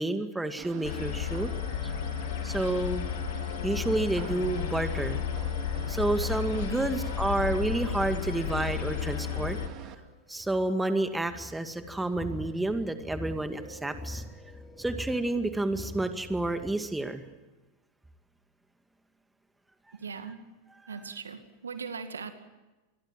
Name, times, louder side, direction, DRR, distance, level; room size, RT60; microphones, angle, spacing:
voice 1, 0.0-1.5 2.4-3.0 3.6-5.2 5.9-9.6 10.3-14.2 14.8-17.2, right 2 dB, 5° right, 8 dB, 2.2 m, -30 dB
sound 1, 0.6-9.9, right 11 dB, 45° right, 2.4 m, -45 dB
sound 2, 0.8-9.7, left 9 dB, 60° left, 2.4 m, -33 dB
voice 2, 6.5-6.9 15.8-15.9 19.9-20.4 20.9-22.3, right 5 dB, 80° right, 8 dB, 2.3 m, -40 dB
sound 3, 9.5-16.7, left 2 dB, 15° left, 3.8 m, -45 dB
28.0 x 22.0 x 7.6 m, 1.1 s
figure-of-eight pair, 95°, 0 cm